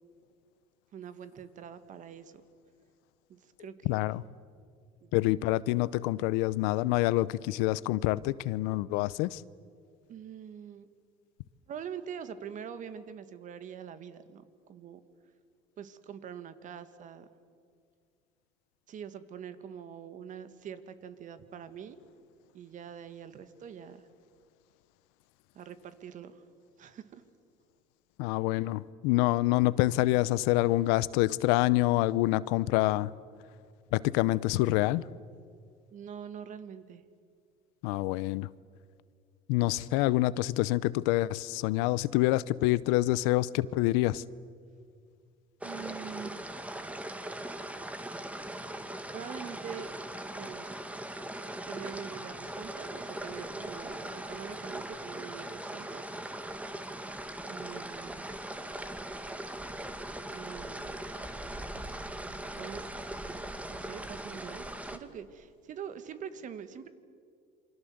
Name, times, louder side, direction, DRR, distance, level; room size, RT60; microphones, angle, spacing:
voice 1, 0.9-2.3 3.3-4.1 5.0-5.1 10.1-10.9 11.7-15.0 15.8-17.3 18.9-22.0 22.5-24.1 25.5-26.4 26.8-27.2 35.9-37.0 45.6-46.4 49.1-49.9 50.3-50.7 51.7-56.1 57.4-58.3 60.3-61.1 62.6-62.9 63.7-66.9, right 8 dB, 50° right, 2.1 m, -44 dB
voice 2, 3.9-4.2 5.1-9.4 28.2-33.1 33.9-35.0 37.8-38.5 39.5-44.2, left 18 dB, 85° left, 0.7 m, -27 dB
sound 1, 45.6-65.0, right 1 dB, 10° right, 1.9 m, -40 dB
28.0 x 25.0 x 8.0 m
supercardioid pair, 100°, 16 cm